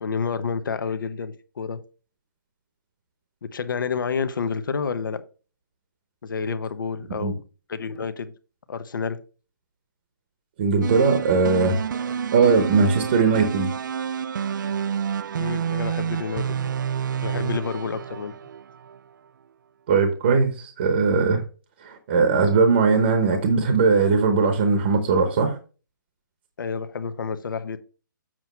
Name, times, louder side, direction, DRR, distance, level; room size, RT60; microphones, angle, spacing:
voice 1, 0.0-1.8 3.4-5.2 6.2-7.4 7.7-8.3 8.7-9.2 15.3-16.7 17.2-18.3 26.6-27.8, left 5 dB, 70° left, 0.9 m, -29 dB
voice 2, 10.6-13.7 19.9-21.4 21.8-25.6, right 4 dB, 30° right, 0.9 m, -20 dB
sound 1, 10.8-19.0, right 8 dB, 65° right, 0.3 m, -29 dB
7.6 x 6.0 x 3.1 m
hypercardioid pair, 175°, 11 cm